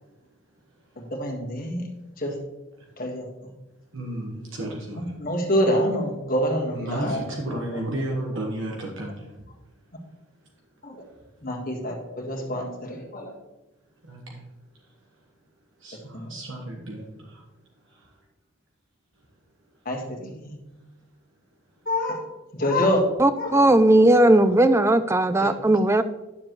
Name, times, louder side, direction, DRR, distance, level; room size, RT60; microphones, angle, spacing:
voice 1, 1.0-1.9 2.2-2.4 3.0-3.5 5.0-7.2 7.5-7.8 10.8-11.0 11.4-13.3 16.1-16.3 19.8-20.6 21.8-22.2 22.5-23.1 23.4-23.6 25.4-25.5, equal, 40° left, 0 dB, 1.6 m, -27 dB
voice 2, 3.9-5.2 6.7-9.3 14.1-14.4 15.8-17.1, right 1 dB, 65° right, -1 dB, 1.4 m, -32 dB
voice 3, 23.2-26.0, right 1 dB, 10° right, 12 dB, 0.3 m, -17 dB
9.7 x 7.3 x 3.1 m, 1.0 s
head